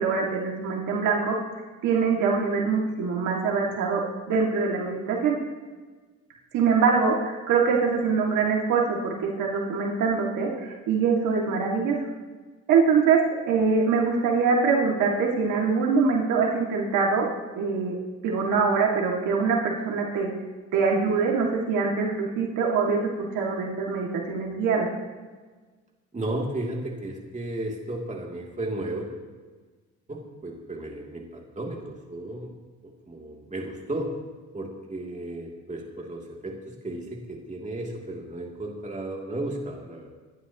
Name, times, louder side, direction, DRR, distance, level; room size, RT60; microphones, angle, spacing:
voice 1, 0.0-1.4 1.8-4.0 4.3-5.4 6.5-12.0 12.7-13.2 13.5-17.3 17.5-20.3 20.7-24.9, right 5 dB, 90° right, -1 dB, 2.5 m, -24 dB
voice 2, 26.1-29.1 30.1-32.5 32.8-34.1 34.5-40.1, right 1 dB, 25° right, -1 dB, 3.1 m, -34 dB
26.5 x 11.5 x 3.1 m, 1.4 s
cardioid pair, 90°, 30 cm